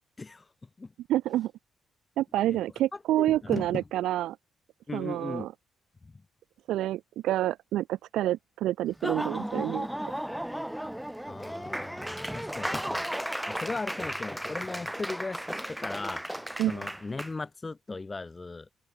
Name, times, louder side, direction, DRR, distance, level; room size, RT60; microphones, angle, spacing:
voice 1, 0.2-0.5 0.8-0.9 2.5-2.6 2.9-3.8 4.9-5.5 6.0-6.2 11.3-13.0 13.5-16.2 16.7-18.7, left 3 dB, 25° left, 5.3 m, -37 dB
voice 2, 1.1-1.5 2.2-4.4 4.9-5.5 6.7-9.9 16.6-16.9, right 14 dB, 85° right, 0.5 m, -28 dB
Laughter / Applause, 8.9-17.3, equal, 5° right, 1.1 m, -35 dB
open air
cardioid pair, 90°, 0 cm